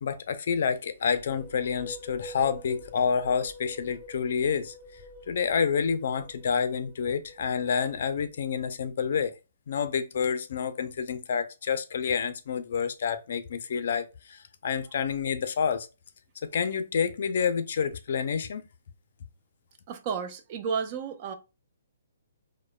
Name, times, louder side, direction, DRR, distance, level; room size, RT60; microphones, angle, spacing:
voice 1, 0.0-4.7 5.3-9.3 9.7-15.9 16.5-18.6, left 6 dB, 60° left, 0.4 m, -28 dB
sound 1, 0.9-8.6, left 1 dB, ahead, 0.8 m, -47 dB
voice 2, 19.9-21.3, right 6 dB, 35° right, 0.4 m, -32 dB
3.0 x 2.0 x 2.2 m
hypercardioid pair, 145°, 0 cm